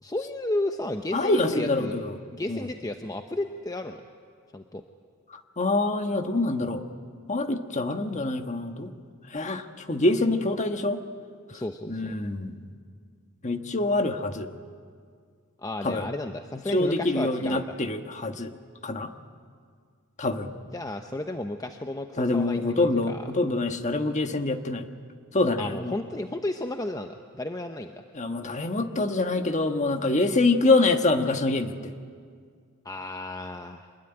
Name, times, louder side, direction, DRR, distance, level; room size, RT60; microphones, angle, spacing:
voice 1, 0.0-2.0 2.3-4.0 4.5-4.8 11.5-12.1 15.6-17.8 20.7-23.3 25.6-28.0 32.8-33.9, left 1 dB, 15° left, 6 dB, 0.8 m, -33 dB
voice 2, 1.1-2.2 2.5-2.6 5.6-6.8 7.3-8.9 9.3-11.0 11.9-12.5 13.4-14.5 15.8-16.1 16.7-18.5 18.8-19.1 20.2-20.5 22.2-24.8 25.3-25.9 28.1-31.9, left 2 dB, 35° left, 6 dB, 1.4 m, -25 dB
25.5 x 20.5 x 9.9 m, 2.1 s
head